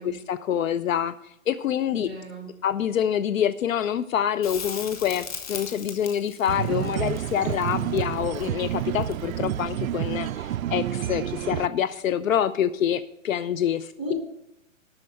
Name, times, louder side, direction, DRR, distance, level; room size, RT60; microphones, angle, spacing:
voice 1, 0.0-2.1 2.6-14.1, left 9 dB, 75° left, 15 dB, 0.6 m, -26 dB
voice 2, 1.9-2.5 6.5-7.1 14.0-14.1, right 2 dB, 5° left, -1 dB, 0.6 m, -37 dB
Crackle, 4.4-9.5 12.3-12.4, left 6 dB, 30° left, 0.9 m, -39 dB
sound 1, 6.5-11.7, right 12 dB, 90° right, 0.5 m, -29 dB
12.0 x 4.3 x 7.7 m, 0.82 s
hypercardioid pair, 170°, 40 cm